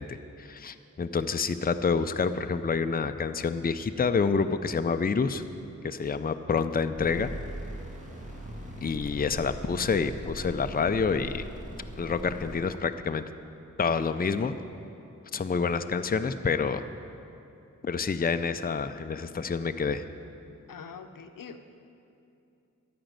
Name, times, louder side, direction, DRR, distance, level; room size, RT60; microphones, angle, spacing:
voice 1, 0.0-5.4 5.8-7.3 8.8-11.5 12.0-13.2 13.8-14.6 15.3-16.9 17.8-20.0, left 5 dB, 30° left, 10 dB, 0.5 m, -28 dB
sound 1, 6.9-12.6, equal, 25° right, 2.0 m, -40 dB
voice 2, 20.7-21.6, left 6 dB, 90° left, 8 dB, 0.6 m, -43 dB
13.0 x 5.2 x 8.9 m, 2.7 s
wide cardioid pair, 55°, 32 cm